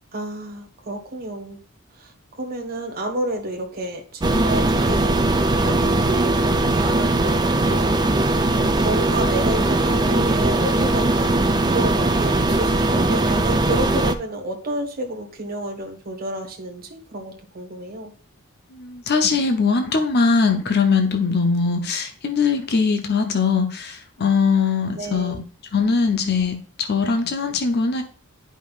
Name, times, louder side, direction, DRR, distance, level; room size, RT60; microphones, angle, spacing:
voice 1, 0.1-1.6 2.0-7.9 8.4-18.1 25.0-25.3, right 1 dB, 45° right, 2 dB, 1.5 m, -30 dB
sound 1, 4.2-14.1, right 2 dB, 20° right, 0.5 m, -20 dB
voice 2, 18.7-25.4 25.7-28.0, left 5 dB, 50° left, 6 dB, 0.7 m, -21 dB
11.0 x 5.1 x 2.4 m, 0.43 s
head